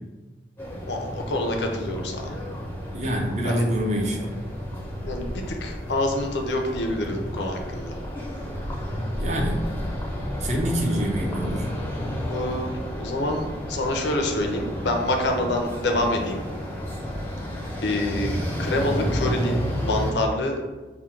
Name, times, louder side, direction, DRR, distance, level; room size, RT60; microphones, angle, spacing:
sound 1, 0.6-20.1, equal, 10° left, 0.5 m, -31 dB
voice 1, 0.9-2.3 3.4-3.7 5.0-8.0 12.3-16.4 17.8-20.6, left 1 dB, 75° left, 3 dB, 0.6 m, -27 dB
voice 2, 2.9-4.3 9.2-9.6 10.4-11.7, equal, 40° right, 0 dB, 0.6 m, -26 dB
3.6 x 2.2 x 4.4 m, 1.2 s
head